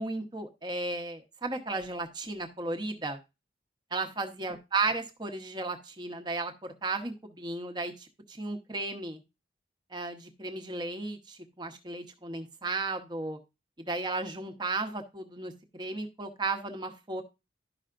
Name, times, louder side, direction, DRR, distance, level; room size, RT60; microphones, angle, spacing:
voice 1, 0.0-3.2 3.9-9.2 9.9-13.4 13.8-17.2, right 3 dB, 25° right, 5 dB, 1.0 m, -34 dB
12.0 x 5.6 x 2.5 m, 0.26 s
head